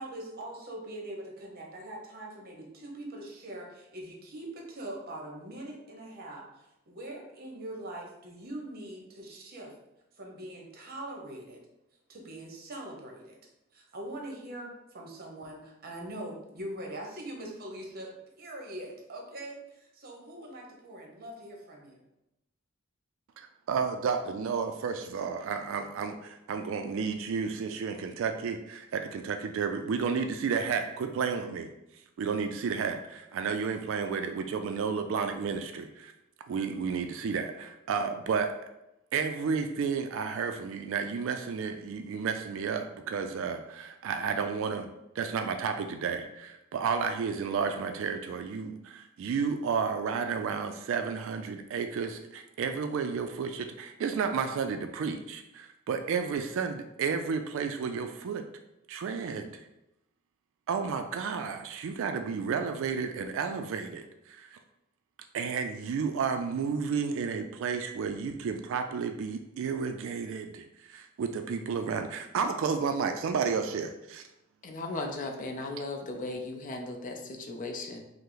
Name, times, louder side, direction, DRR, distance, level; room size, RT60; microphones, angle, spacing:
voice 1, 0.0-9.7 10.2-11.6 12.1-13.4 13.7-22.0, right 1 dB, 45° right, 0 dB, 0.9 m, -42 dB
voice 2, 23.4-31.7 32.2-36.1 36.5-38.5 39.1-44.9 45.2-58.4 58.9-59.7 60.7-64.6 65.3-74.2, right 5 dB, 65° right, 6 dB, 0.3 m, -32 dB
voice 3, 74.6-78.0, left 2 dB, 40° left, 4 dB, 0.5 m, -36 dB
5.3 x 2.0 x 3.9 m, 0.89 s
head